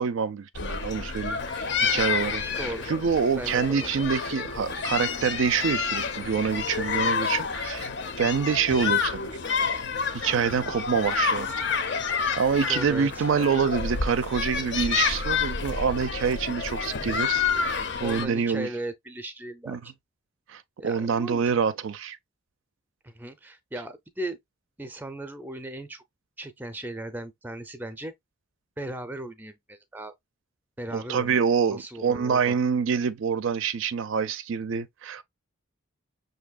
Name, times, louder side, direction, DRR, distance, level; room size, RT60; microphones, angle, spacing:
voice 1, 0.0-7.9 8.2-9.3 9.7-9.8 10.1-11.5 12.4-18.7 19.7-19.8 20.5-22.2 30.9-35.2, right 6 dB, 65° right, 0.4 m, -26 dB
sound 1, 0.5-18.3, left 5 dB, 55° left, 0.6 m, -29 dB
voice 2, 3.4-3.9 12.7-13.2 18.0-19.9 20.8-21.5 23.0-24.4 24.8-26.0 26.4-28.1 28.8-30.1 30.8-31.4 31.7-32.6, right 1 dB, 10° right, 0.5 m, -37 dB
6.0 x 2.7 x 2.3 m
head